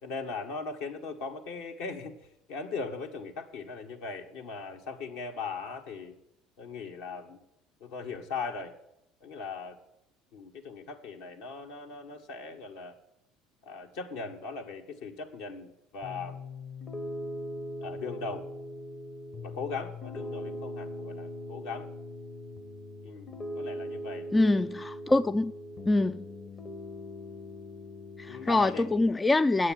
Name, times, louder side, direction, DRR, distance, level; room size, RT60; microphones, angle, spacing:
voice 1, 0.0-2.1 2.5-6.1 6.6-7.4 7.8-8.7 9.2-9.8 10.3-12.9 13.6-16.4 17.8-18.4 19.4-21.9 23.0-24.3 28.3-28.9, left 4 dB, 65° left, 1.6 m, -39 dB
Piano, 16.0-29.1, left 1 dB, 35° left, 1.1 m, -40 dB
voice 2, 24.3-25.5 25.9-26.2 28.2-29.7, left 2 dB, 15° left, 0.3 m, -25 dB
9.2 x 7.9 x 8.8 m
figure-of-eight pair, 65°, 0 cm